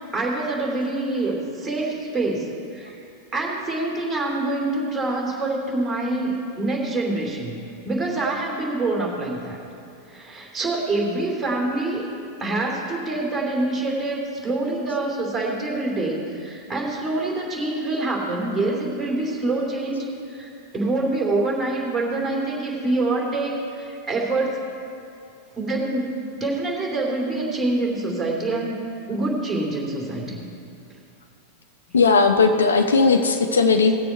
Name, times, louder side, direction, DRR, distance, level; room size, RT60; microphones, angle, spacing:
voice 1, 0.1-3.0 3.3-7.6 7.8-9.6 10.1-12.1 12.4-20.0 20.3-24.6 25.6-28.8 29.1-30.4, right 2 dB, 10° right, -2 dB, 2.8 m, -26 dB
voice 2, 31.9-34.0, left 4 dB, 70° left, 6 dB, 0.7 m, -17 dB
18.0 x 6.9 x 4.6 m, 2.6 s
figure-of-eight pair, 90°, 0 cm